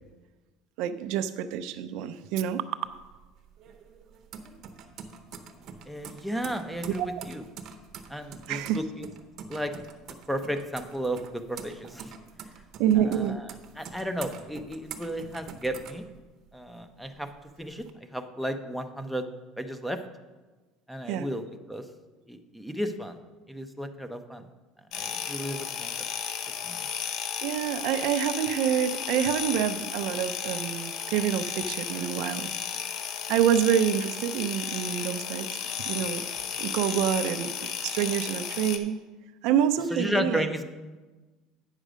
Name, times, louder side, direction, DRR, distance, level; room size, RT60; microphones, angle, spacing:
voice 1, 0.8-2.7 7.0-7.2 8.5-8.8 12.8-13.5 21.1-21.3 27.4-32.5 33.3-36.2 36.6-39.0 39.4-40.5, right 9 dB, 65° right, 11 dB, 0.4 m, -27 dB
sound 1, 2.9-16.7 17.1-17.9, right 6 dB, 50° right, 0.8 m, -45 dB
voice 2, 5.9-7.4 8.1-9.1 9.5-9.7 10.3-12.1 13.0-13.5 13.8-16.0 16.5-17.3 17.6-17.9 18.1-19.3 19.6-20.0 20.9-21.9 22.3-23.2 23.5-24.4 24.9-25.9 26.6-26.8 39.9-40.6, equal, ahead, 8 dB, 0.7 m, -33 dB
sound 2, 24.9-38.8, left 8 dB, 55° left, 0.7 m, -34 dB
9.0 x 6.4 x 5.0 m, 1.2 s
supercardioid pair, 125°, 0 cm